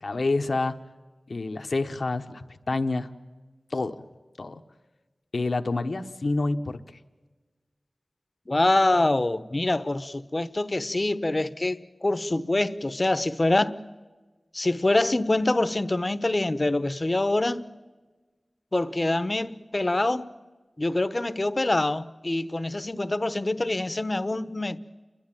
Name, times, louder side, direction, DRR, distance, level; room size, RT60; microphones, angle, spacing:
voice 1, 0.0-0.8 1.3-3.1 3.7-4.0 4.4-4.6 5.3-6.8, left 3 dB, 75° left, 1.0 m, -28 dB
voice 2, 8.5-13.8 14.5-17.7 18.7-20.3 20.8-24.8, left 2 dB, 40° left, 0.9 m, -25 dB
29.5 x 12.0 x 9.0 m
wide cardioid pair, 50°, 0 cm